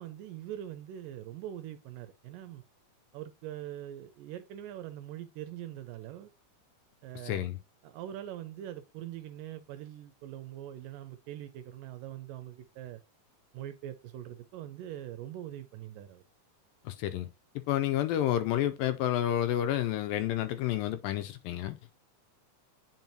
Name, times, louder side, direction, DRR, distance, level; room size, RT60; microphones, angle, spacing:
voice 1, 0.0-2.6 3.1-6.3 7.0-7.5 7.8-13.0 13.5-16.2, right 12 dB, 80° right, 2.0 m, -43 dB
voice 2, 7.2-7.6 16.9-17.3 17.7-21.8, left 12 dB, 80° left, 2.1 m, -30 dB
9.3 x 4.6 x 2.8 m
omnidirectional pair, 4.3 m